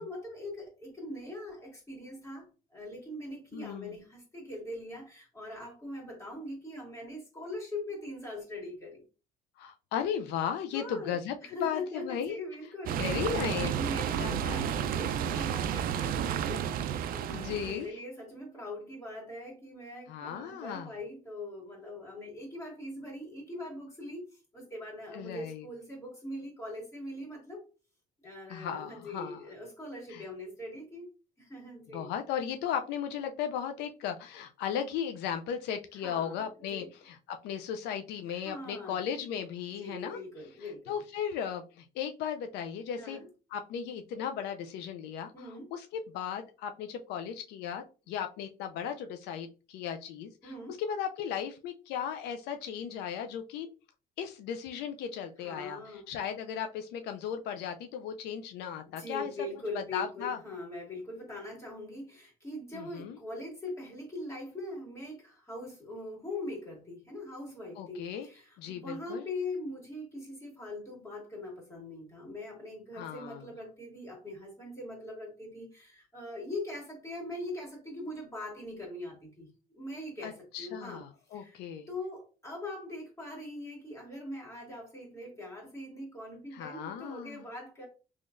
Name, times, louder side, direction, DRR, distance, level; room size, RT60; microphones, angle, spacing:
voice 1, 0.0-9.0 10.7-24.3 24.5-27.6 28.2-31.1 31.4-32.1 36.0-36.9 38.3-39.0 39.8-40.9 43.0-43.3 45.3-45.7 50.4-50.8 55.4-56.2 58.9-79.5 79.7-81.0 81.3-81.6 81.9-87.9, left 1 dB, 15° left, -2 dB, 2.1 m, -42 dB
voice 2, 3.5-3.9 9.6-12.4 13.0-13.8 14.2-14.7 17.3-17.9 20.1-20.9 25.1-25.7 28.5-29.4 30.1-30.2 31.9-40.2 40.9-43.2 43.5-45.9 46.1-53.7 54.2-55.8 56.1-59.3 59.9-60.4 62.7-63.2 67.8-68.3 68.6-69.3 72.9-73.4 80.2-81.9 86.5-87.5, left 8 dB, 85° left, 6 dB, 0.5 m, -36 dB
sound 1, 12.8-17.8, right 9 dB, 60° right, 0.4 m, -31 dB
3.9 x 3.0 x 2.5 m, 0.33 s
cardioid pair, 110°, 17 cm